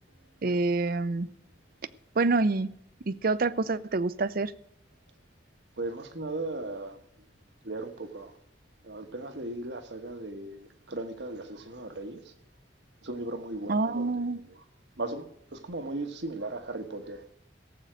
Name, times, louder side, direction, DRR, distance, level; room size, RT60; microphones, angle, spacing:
voice 1, 0.4-1.3 2.2-2.7 3.1-4.5 13.7-14.4, right 3 dB, 55° right, 0.6 m, -27 dB
voice 2, 5.8-7.0 7.6-8.3 8.8-12.3 13.0-14.6 15.0-17.2, right 2 dB, 75° right, 1.4 m, -37 dB
17.0 x 7.9 x 6.3 m
head